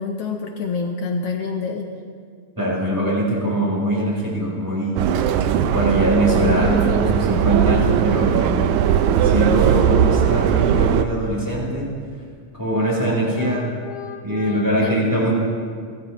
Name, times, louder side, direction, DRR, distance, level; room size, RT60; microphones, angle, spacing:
voice 1, 0.0-1.9 13.4-14.9, left 4 dB, 70° left, 2 dB, 1.6 m, -28 dB
voice 2, 2.6-5.2 5.7-8.7 9.2-11.9 12.5-13.7 14.2-15.3, right 1 dB, 5° right, -4 dB, 3.9 m, -22 dB
Subway metro underground, 5.0-11.0, right 9 dB, 80° right, 2.0 m, -18 dB
29.5 x 12.5 x 3.1 m, 2.1 s
omnidirectional pair, 3.5 m